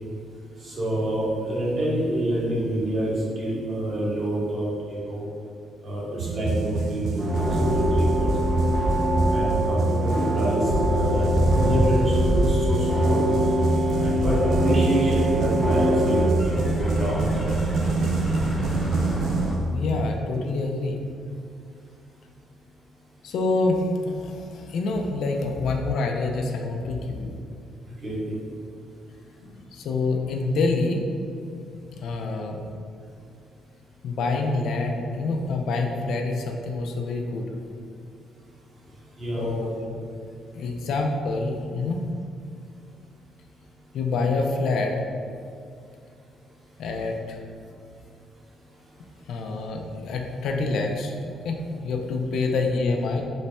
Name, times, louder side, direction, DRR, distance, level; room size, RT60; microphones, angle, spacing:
voice 1, 0.6-5.2 5.8-8.6 9.3-11.3 11.5-13.2 13.9-17.5 28.0-28.4 39.2-39.6, right 1 dB, 40° right, -6 dB, 1.1 m, -28 dB
sound 1, 6.2-20.1, right 2 dB, 70° right, 0.3 m, -25 dB
sound 2, 7.2-16.3, equal, 20° right, 0.5 m, -24 dB
sound 3, 10.6-19.6, left 1 dB, 25° left, 0.7 m, -35 dB
voice 2, 19.7-21.0 23.2-27.4 29.4-31.0 31.9-32.6 34.0-37.5 39.4-40.0 40.5-42.0 43.9-44.9 46.8-47.4 49.3-53.2, left 3 dB, 75° left, 2 dB, 0.3 m, -27 dB
3.1 x 2.1 x 4.1 m, 2.4 s
cardioid pair, 90°, 0 cm